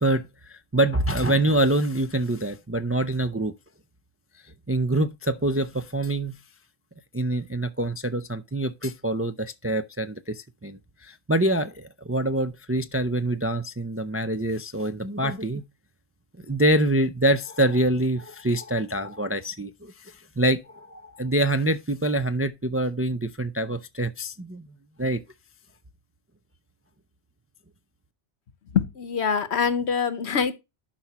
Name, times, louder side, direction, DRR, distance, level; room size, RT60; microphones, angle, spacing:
voice 1, 0.0-3.5 4.7-6.3 7.1-15.6 16.4-24.7 25.0-25.2, right 1 dB, 20° right, 0.3 m, -25 dB
voice 2, 28.7-30.5, left 6 dB, 75° left, 1.3 m, -24 dB
11.5 x 5.8 x 3.0 m
omnidirectional pair, 1.1 m